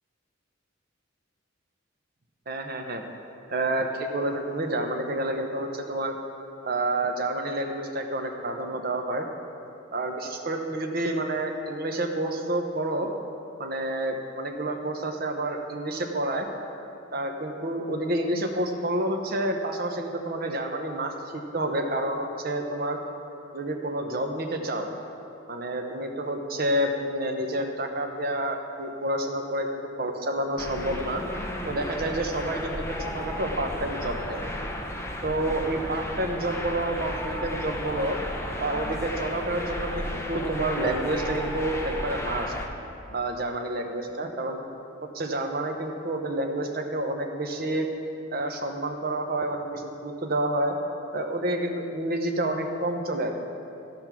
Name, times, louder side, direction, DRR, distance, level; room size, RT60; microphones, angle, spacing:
voice 1, 2.5-3.0 3.5-6.2 6.6-9.2 9.9-13.1 13.6-16.5 17.1-23.0 23.5-24.9 25.5-31.2 31.7-32.8 33.1-34.4 35.2-38.2 38.6-42.5 43.1-44.6 45.1-47.9 48.3-50.7 51.1-53.3, right 1 dB, 50° right, 4 dB, 0.9 m, -29 dB
sound 1, 30.6-42.7, left 1 dB, 15° left, 0.8 m, -33 dB
14.5 x 5.3 x 6.0 m, 2.7 s
head